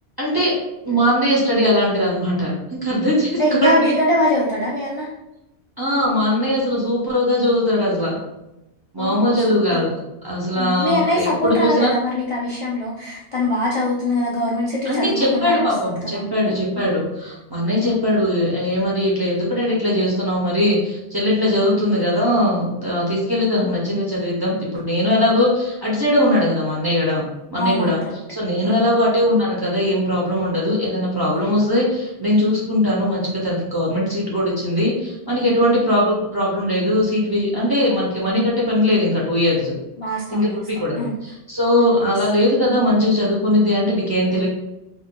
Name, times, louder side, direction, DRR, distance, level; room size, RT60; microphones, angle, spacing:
voice 1, 0.2-0.5 0.8-3.9 5.8-8.2 8.9-9.9 10.2-11.9 14.8-27.2 27.5-28.0 28.3-39.7 40.3-44.5, left 1 dB, 30° right, -5 dB, 0.5 m, -20 dB
voice 2, 3.4-5.1 9.0-9.8 10.5-15.7 16.1-16.9 17.8-18.0 21.6-21.8 27.5-28.0 28.6-29.0 40.0-41.1 41.8-42.1, left 1 dB, 50° left, -5 dB, 0.4 m, -23 dB
2.5 x 2.2 x 3.6 m, 0.92 s
omnidirectional pair, 1.1 m